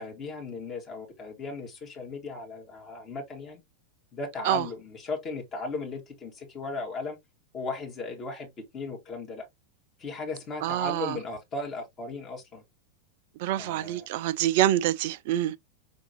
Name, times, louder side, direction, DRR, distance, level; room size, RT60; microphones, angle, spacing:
voice 1, 0.0-3.6 4.1-7.2 7.5-9.5 10.0-12.6 13.6-14.1, left 3 dB, 30° left, 1.8 m, -36 dB
voice 2, 10.6-11.2 13.4-15.6, right 13 dB, 50° right, 0.4 m, -26 dB
5.3 x 3.5 x 2.7 m
figure-of-eight pair, 90°, 0 cm